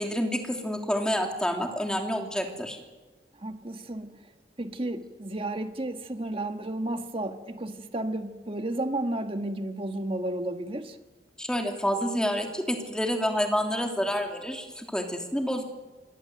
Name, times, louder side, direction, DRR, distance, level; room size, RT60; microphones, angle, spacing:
voice 1, 0.0-2.8 11.4-15.6, equal, 5° left, 2 dB, 3.0 m, -28 dB
voice 2, 3.4-4.1 4.6-11.0, right 1 dB, 30° right, 7 dB, 1.6 m, -32 dB
25.5 x 22.0 x 7.9 m, 1.2 s
head